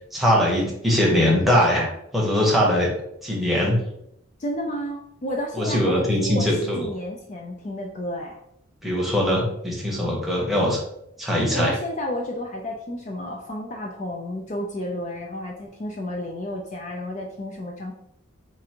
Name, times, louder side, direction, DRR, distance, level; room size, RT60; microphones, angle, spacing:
voice 1, 0.0-2.9 3.2-3.8 5.5-6.8 8.8-10.8 11.2-11.7, equal, ahead, -4 dB, 0.9 m, -21 dB
voice 2, 4.4-8.4 11.5-17.9, left 1 dB, 35° left, 0 dB, 0.4 m, -31 dB
4.5 x 2.5 x 2.8 m, 0.75 s
head